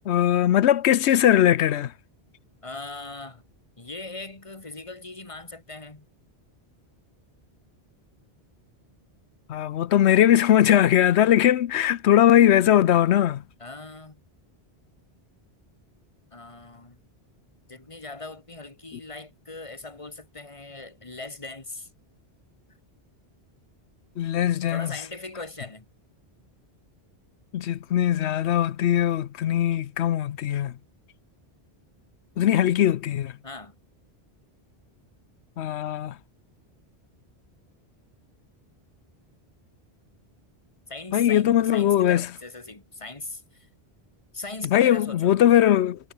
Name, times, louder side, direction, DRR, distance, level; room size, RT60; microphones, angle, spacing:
voice 1, 0.1-1.9 9.5-13.4 24.2-24.9 27.5-30.7 32.4-33.3 35.6-36.1 41.1-42.2 44.7-46.0, left 11 dB, 90° left, 1.0 m, -20 dB
voice 2, 2.6-3.4 3.8-6.1 13.6-14.2 16.3-17.0 17.7-21.9 24.7-25.9 33.4-33.8 40.9-43.7 44.3-45.4, left 2 dB, 30° left, 2.2 m, -39 dB
omnidirectional pair, 1.1 m